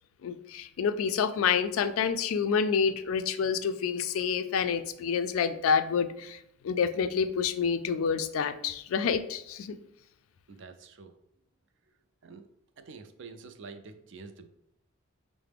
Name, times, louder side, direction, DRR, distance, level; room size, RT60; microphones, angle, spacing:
voice 1, 0.2-9.8, left 6 dB, 80° left, 10 dB, 0.3 m, -28 dB
voice 2, 10.5-11.1 12.2-12.5 12.8-14.5, right 4 dB, 60° right, 8 dB, 0.4 m, -47 dB
5.7 x 2.1 x 3.4 m, 0.77 s
head